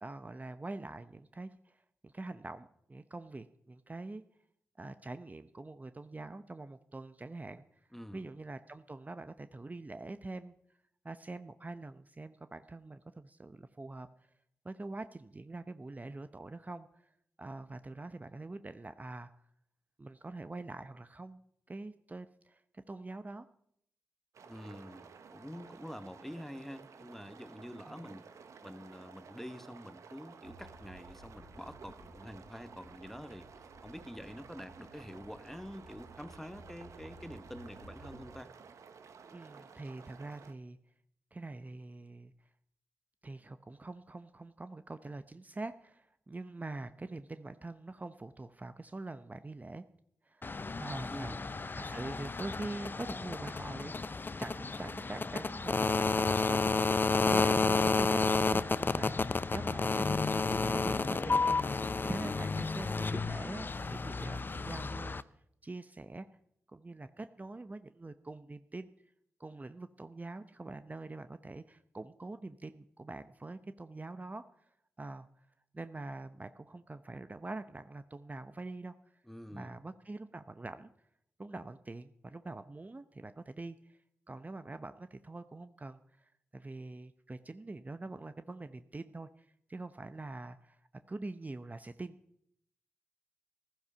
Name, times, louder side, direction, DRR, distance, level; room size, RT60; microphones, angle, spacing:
voice 1, 0.0-4.2 4.8-7.6 8.1-10.5 11.0-14.1 14.6-16.9 17.4-19.3 20.0-21.4 21.7-23.5 27.9-28.1 39.3-40.8 41.3-42.3 43.2-49.8 50.2-50.5 50.8-51.3 51.8-65.2 65.6-66.3 66.7-68.9 69.4-74.5 75.0-75.3 75.7-78.9 79.5-80.9 81.4-84.0 84.3-90.8 91.1-92.2, right 2 dB, 30° right, 11 dB, 0.8 m, -44 dB
voice 2, 7.9-8.3 24.4-28.3 28.6-38.5 51.1-51.5 79.2-79.8, equal, 5° left, 11 dB, 1.3 m, -47 dB
sound 1, 24.3-40.5, right 5 dB, 75° right, 1.1 m, -54 dB
sound 2, 30.4-38.4, right 1 dB, 65° left, 2.1 m, -56 dB
sound 3, 50.4-65.2, left 4 dB, 40° left, 0.7 m, -31 dB
14.5 x 12.5 x 5.7 m, 0.73 s
supercardioid pair, 45°, 5 cm